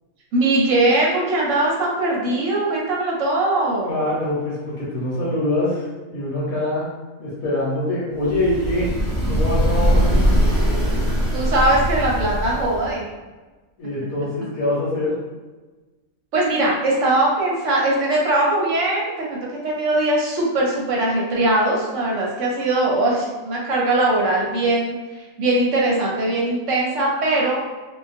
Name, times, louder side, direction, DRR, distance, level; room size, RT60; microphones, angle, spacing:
voice 1, 0.3-4.0 11.3-13.0 16.3-19.4 19.6-27.6, right 2 dB, 65° right, -3 dB, 0.9 m, -20 dB
voice 2, 3.8-6.9 7.2-8.9 9.3-10.3 13.8-15.1, left 1 dB, 70° left, -7 dB, 1.1 m, -24 dB
sound 1, 8.2-13.0, equal, 15° left, 0.9 m, -21 dB
2.4 x 2.3 x 2.5 m, 1.2 s
omnidirectional pair, 1.5 m